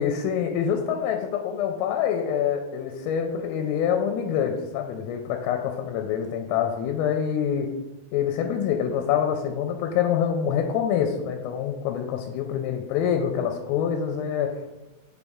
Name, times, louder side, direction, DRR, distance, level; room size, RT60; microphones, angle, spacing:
voice 1, 0.0-7.7 8.1-14.7, left 8 dB, 90° left, 4 dB, 3.1 m, -26 dB
7.1 x 4.0 x 3.6 m, 1.1 s
omnidirectional pair, 5.7 m